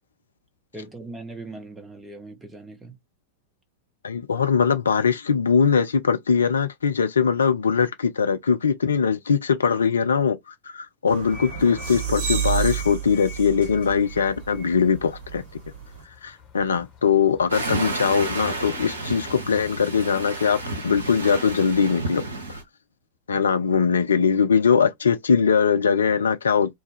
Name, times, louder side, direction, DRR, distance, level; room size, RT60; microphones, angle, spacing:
voice 1, 0.7-3.0, right 2 dB, 10° right, 0.9 m, -39 dB
voice 2, 4.0-15.4 16.2-22.2 22.5-22.6 23.3-26.7, left 6 dB, 70° left, 0.4 m, -21 dB
sound 1, 11.1-16.0, right 9 dB, 55° right, 1.4 m, -31 dB
sound 2, 11.3-18.4, left 5 dB, 30° left, 1.1 m, -46 dB
sound 3, 17.5-22.6, right 2 dB, 75° right, 0.9 m, -31 dB
2.6 x 2.2 x 3.3 m
figure-of-eight pair, 90°, 0 cm